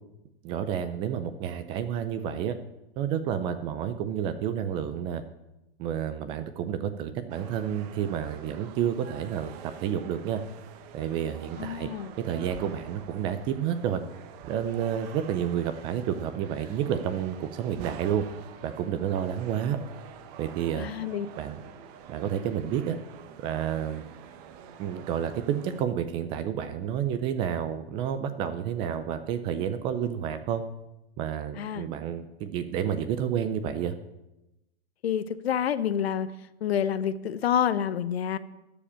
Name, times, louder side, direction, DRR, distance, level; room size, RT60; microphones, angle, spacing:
voice 1, 0.4-2.6 3.0-5.2 5.8-10.4 10.9-11.9 12.2-14.0 14.5-18.2 18.6-19.8 20.4-20.9 21.4-21.6 22.1-23.0 23.4-24.0 24.8-30.6 31.2-33.9, right 9 dB, 15° right, 11 dB, 0.3 m, -30 dB
sound 1, 7.3-25.8, right 7 dB, 40° right, 0.9 m, -47 dB
voice 2, 11.6-12.1 20.7-21.3 31.5-31.9 35.0-36.3 36.6-38.4, left 9 dB, 75° left, 14 dB, 0.8 m, -28 dB
13.0 x 5.0 x 8.6 m, 0.96 s
hypercardioid pair, 130°, 31 cm